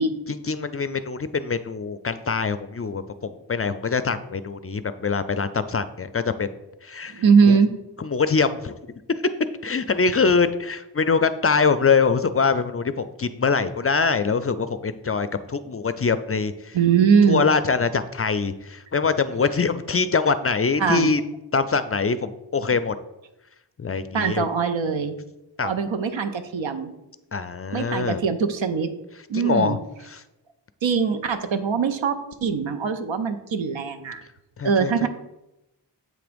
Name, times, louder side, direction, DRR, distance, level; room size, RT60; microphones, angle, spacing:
voice 1, 0.3-6.5 6.8-7.6 8.0-8.7 9.6-16.8 17.3-21.2 21.5-22.9 23.8-24.5 25.6-25.7 27.3-28.2 29.3-29.8 30.1-30.2 34.6-35.1, left 5 dB, 35° left, 13 dB, 0.4 m, -23 dB
voice 2, 7.1-7.7 16.7-17.4 20.8-21.1 24.1-25.1 25.6-26.9 27.7-28.9 29.3-29.8 30.8-34.2 34.6-35.1, right 6 dB, 85° right, 9 dB, 0.7 m, -21 dB
7.7 x 3.4 x 5.1 m, 0.94 s
wide cardioid pair, 45°, 45 cm